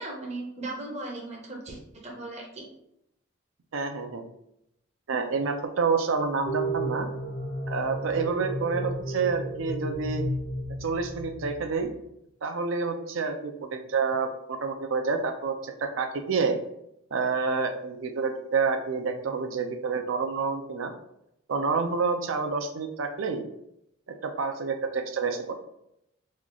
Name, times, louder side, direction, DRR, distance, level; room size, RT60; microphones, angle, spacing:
voice 1, 0.0-2.7, right 2 dB, 35° right, -2 dB, 0.7 m, -37 dB
voice 2, 3.7-4.3 5.1-7.1 7.7-10.2 10.8-11.9 12.4-16.6 17.1-20.9 21.5-23.4 24.2-25.5, right 4 dB, 75° right, 5 dB, 0.5 m, -28 dB
sound 1, 6.5-11.8, right 1 dB, 30° left, 0.5 m, -33 dB
3.1 x 2.3 x 3.8 m, 0.79 s
head